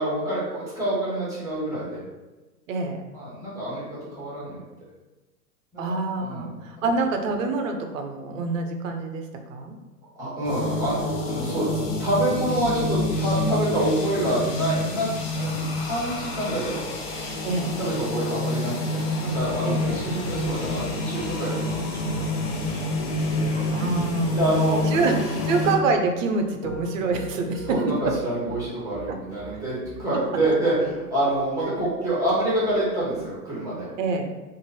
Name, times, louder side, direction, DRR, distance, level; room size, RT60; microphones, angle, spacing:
voice 1, 0.0-2.0 3.1-4.6 5.7-6.5 10.2-22.1 22.7-22.8 23.3-23.6 24.3-25.1 27.7-33.9, right 1 dB, 5° right, -8 dB, 1.3 m, -27 dB
voice 2, 2.7-3.0 5.8-9.2 9.5-9.8 17.4-17.8 19.6-20.1 23.7-24.4 24.9-28.2 29.1-29.2 34.0-34.4, right 3 dB, 50° right, 5 dB, 0.7 m, -26 dB
sound 1, 10.4-25.8, left 2 dB, 40° left, 0.6 m, -28 dB
Piano, 19.3-33.2, equal, 15° left, 1.0 m, -39 dB
3.0 x 2.6 x 4.0 m, 1.1 s
hypercardioid pair, 115°, 49 cm